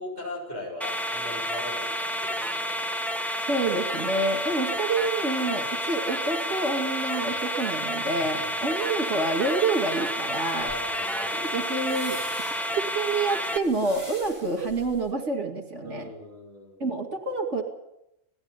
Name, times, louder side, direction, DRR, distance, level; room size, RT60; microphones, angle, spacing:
voice 1, 0.0-2.8 8.4-8.8 10.6-11.7 15.8-16.8, left 2 dB, 50° left, -2 dB, 7.9 m, -39 dB
sound 1, 0.8-13.6, equal, ahead, 1.3 m, -30 dB
voice 2, 3.5-10.7 11.3-12.2 12.7-16.1 16.8-17.6, right 3 dB, 60° right, 3 dB, 2.8 m, -28 dB
sound 2, 10.5-15.1, equal, 15° left, 3.9 m, -45 dB
18.5 x 15.0 x 9.8 m, 0.86 s
omnidirectional pair, 1.4 m